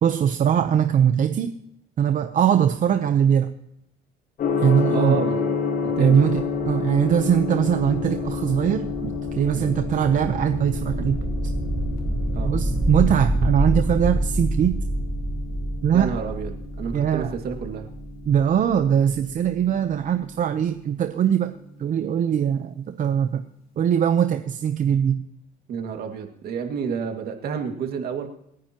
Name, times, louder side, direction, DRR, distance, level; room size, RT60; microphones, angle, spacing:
voice 1, 0.0-1.5 2.0-3.5 4.6-5.2 6.0-11.2 12.4-14.7 15.8-16.1 16.9-17.3 18.3-21.5 21.8-23.4 23.8-25.2, right 9 dB, 50° right, 8 dB, 0.8 m, -21 dB
Gong, 4.4-22.3, left 5 dB, 60° left, 4.2 m, -31 dB
voice 2, 4.9-5.6 6.0-6.3 9.6-9.7 12.3-12.5 15.9-17.9 25.7-28.3, right 6 dB, 65° right, 4 dB, 2.2 m, -30 dB
sound 1, 6.5-19.5, right 1 dB, 10° right, 2.0 m, -28 dB
27.5 x 9.8 x 3.0 m, 0.78 s
cardioid pair, 110°, 17 cm